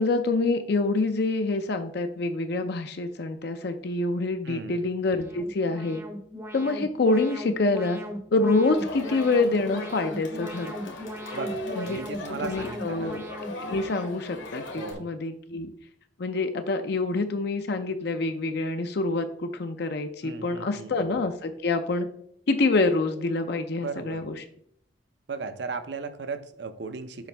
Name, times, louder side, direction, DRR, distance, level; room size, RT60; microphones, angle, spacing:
voice 1, 0.0-6.0 6.5-8.0 8.3-10.9 11.8-12.0 12.4-13.2 13.6-15.7 16.2-22.1 22.5-24.4, left 3 dB, 55° left, 7 dB, 0.5 m, -26 dB
voice 2, 4.4-4.9 11.3-13.2 14.8-15.1 20.2-21.0 23.8-24.2 25.3-27.3, right 4 dB, 60° right, 10 dB, 0.6 m, -36 dB
Alarm, 5.1-14.9, equal, 15° right, 0.6 m, -39 dB
Crowd, 8.7-14.9, left 1 dB, 75° left, 1.6 m, -38 dB
7.2 x 5.1 x 3.3 m, 0.68 s
head